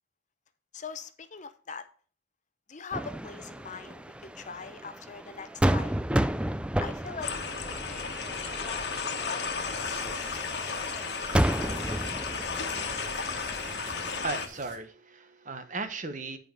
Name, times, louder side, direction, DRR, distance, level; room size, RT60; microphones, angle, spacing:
voice 1, 0.7-1.9 2.7-5.9 6.8-7.3 7.6-8.1 8.6-9.6, left 5 dB, 45° left, 0.8 m, -41 dB
sound 1, 2.9-14.2, right 1 dB, 5° right, 0.4 m, -32 dB
sound 2, 7.2-14.5, left 5 dB, 65° left, 1.4 m, -34 dB
sound 3, 9.6-14.8, right 2 dB, 80° right, 2.3 m, -50 dB
voice 2, 14.0-16.4, right 3 dB, 45° right, 1.2 m, -36 dB
10.0 x 5.2 x 5.2 m
head